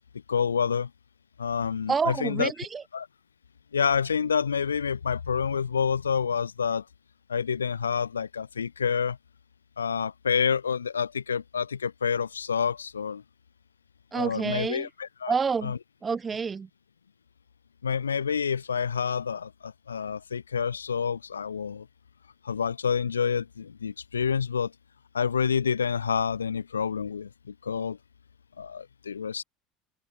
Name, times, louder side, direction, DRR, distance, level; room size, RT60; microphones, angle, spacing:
voice 1, 0.3-0.9 1.4-2.5 2.9-3.1 3.7-6.8 7.3-9.2 9.8-13.2 14.1-15.3 15.6-15.8 17.8-21.9 22.4-24.7 25.1-28.0 28.6-29.4, left 6 dB, 85° left, 2.8 m, -28 dB
voice 2, 1.9-2.8 14.1-14.9 15.3-15.7 16.0-16.7, right 5 dB, 25° right, 1.8 m, -28 dB
figure-of-eight pair, 70°, 0 cm